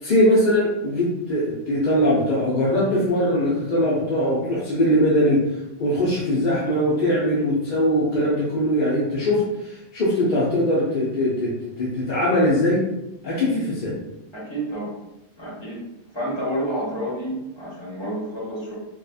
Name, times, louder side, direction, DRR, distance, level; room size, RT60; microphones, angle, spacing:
voice 1, 0.0-5.4 5.8-11.5 11.8-12.8 13.2-13.9, equal, 50° left, -8 dB, 0.7 m, -21 dB
voice 2, 14.3-14.9 15.4-15.8 16.1-18.7, right 1 dB, 25° left, -8 dB, 1.0 m, -29 dB
2.9 x 2.2 x 2.3 m, 0.91 s
omnidirectional pair, 1.3 m